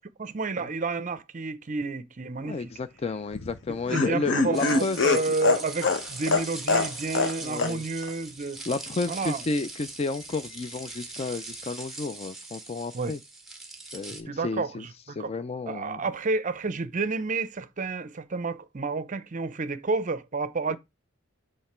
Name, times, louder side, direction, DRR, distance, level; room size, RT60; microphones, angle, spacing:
voice 1, 0.2-2.7 3.9-8.6 9.1-9.4 12.9-13.1 14.3-15.3 15.7-20.8, right 3 dB, 40° right, 0.6 m, -30 dB
voice 2, 2.4-5.0 7.4-7.8 8.7-13.2 13.9-14.9 15.2-16.0, left 3 dB, 30° left, 0.3 m, -31 dB
Laughter, 3.3-7.3 7.6-7.7 8.0-8.1, left 3 dB, 60° left, 0.8 m, -24 dB
sound 1, 4.5-14.2, right 3 dB, ahead, 1.1 m, -41 dB
7.8 x 3.2 x 4.3 m
head